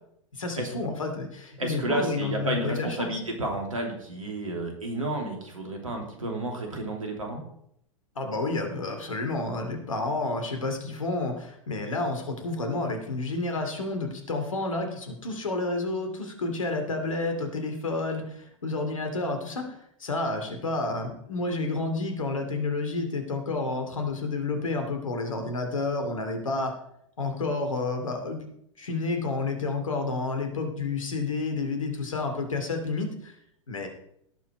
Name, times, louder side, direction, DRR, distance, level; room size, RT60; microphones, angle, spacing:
voice 1, 0.3-3.1 8.2-19.7 20.0-26.7 27.2-28.5 28.8-33.3 33.7-33.9, left 3 dB, 75° left, 5 dB, 2.7 m, -30 dB
voice 2, 1.6-7.4, right 2 dB, 80° right, 2 dB, 3.1 m, -31 dB
17.5 x 5.9 x 4.6 m, 0.72 s
figure-of-eight pair, 100°, 17 cm